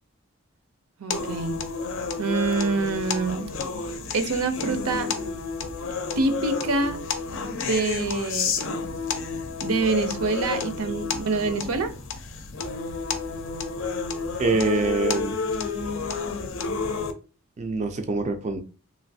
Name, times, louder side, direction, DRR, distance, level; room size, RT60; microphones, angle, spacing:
voice 1, 1.0-1.6 2.2-3.5 4.1-5.1 6.2-7.0 7.3-8.9 9.6-11.9, right 3 dB, 85° right, 0.6 m, -26 dB
sound 1, 1.1-17.1, left 4 dB, 60° left, 0.5 m, -30 dB
voice 2, 14.4-15.3 17.6-18.6, right 3 dB, 30° right, 0.3 m, -25 dB
3.1 x 2.5 x 2.6 m
head